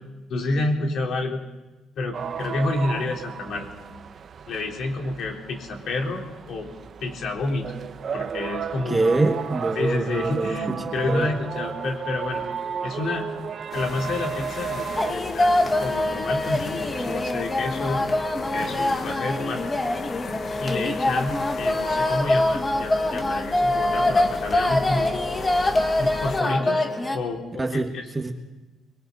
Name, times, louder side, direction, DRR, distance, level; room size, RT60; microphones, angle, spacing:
voice 1, 0.3-1.4 2.0-3.7 4.5-6.7 7.0-7.8 8.1-9.1 9.8-12.4 12.8-13.3 13.7-18.0 18.5-19.7 20.6-25.1 26.0-26.9 27.1-27.8, left 2 dB, 55° left, 0 dB, 4.0 m, -29 dB
sound 1, 2.1-15.1, right 7 dB, 40° right, 0.8 m, -34 dB
voice 2, 8.8-11.4 27.6-28.3, right 3 dB, 10° right, 3 dB, 1.5 m, -25 dB
sound 2, 13.7-26.4, left 5 dB, 35° left, 0.9 m, -37 dB
sound 3, 15.0-27.2, left 1 dB, 15° left, 1.8 m, -24 dB
29.5 x 22.5 x 4.1 m, 1.1 s
cardioid pair, 145°, 0 cm